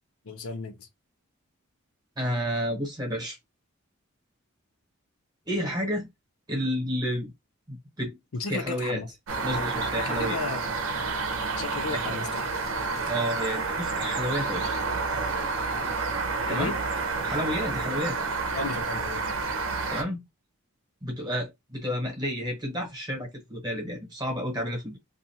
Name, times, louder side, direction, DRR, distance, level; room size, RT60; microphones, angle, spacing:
voice 1, 0.2-0.9 8.3-9.1 10.0-10.7 11.6-12.5 16.5-16.8 18.5-19.2, left 4 dB, 80° left, 0.6 m, -34 dB
voice 2, 2.2-3.4 5.5-6.1 6.5-7.3 7.7-8.2 8.5-9.0 9.4-10.4 11.9-12.2 13.1-14.7 16.5-16.7 17.2-18.2 19.9-20.2 21.0-25.0, equal, 20° right, 1.1 m, -30 dB
sound 1, 9.3-20.0, right 4 dB, 75° right, 0.7 m, -29 dB
2.5 x 2.4 x 2.8 m
head